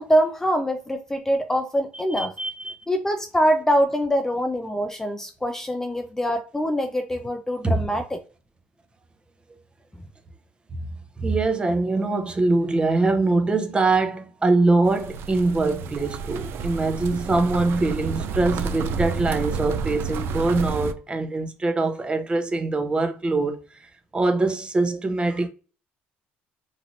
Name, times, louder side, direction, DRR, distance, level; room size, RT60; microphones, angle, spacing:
voice 1, 0.0-2.3 2.9-8.2, equal, 10° left, 0.4 m, -24 dB
voice 2, 2.2-2.8 7.6-7.8 11.2-25.5, right 3 dB, 20° right, 0.7 m, -23 dB
sound 1, 14.9-20.9, right 5 dB, 60° right, 0.4 m, -30 dB
3.1 x 2.5 x 2.6 m
supercardioid pair, 85°, 4 cm